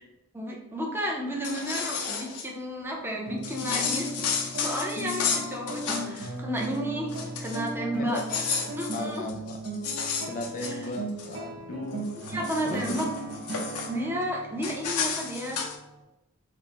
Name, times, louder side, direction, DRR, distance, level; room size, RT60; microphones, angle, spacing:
voice 1, 0.3-4.1 4.6-7.1 7.4-8.2 8.8-9.3 10.6-10.7 12.3-13.0 13.9-15.6, equal, 10° right, -1 dB, 0.6 m, -32 dB
sound 1, 1.3-2.5 3.4-6.3 6.6-6.8 7.1-7.7 8.1-11.4 11.9-13.9 14.6-15.8, left 6 dB, 85° left, 0.6 m, -32 dB
sound 2, 3.3-16.0, right 1 dB, 75° right, 0.8 m, -37 dB
voice 2, 8.9-9.6 10.3-12.1 12.7-13.0, left 2 dB, 35° left, 4 dB, 0.3 m, -36 dB
4.3 x 2.1 x 2.8 m, 0.88 s
head